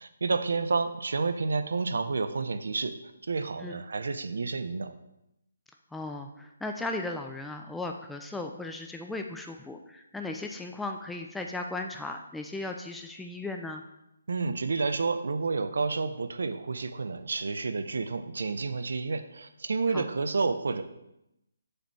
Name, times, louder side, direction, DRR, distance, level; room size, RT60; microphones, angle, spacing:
voice 1, 0.0-2.9 3.3-4.9 14.3-20.8, right 4 dB, 65° right, 11 dB, 0.6 m, -30 dB
voice 2, 5.9-13.8 19.9-20.1, left 2 dB, 5° left, 3 dB, 0.4 m, -36 dB
6.6 x 4.1 x 4.6 m, 0.85 s
figure-of-eight pair, 145°, 0 cm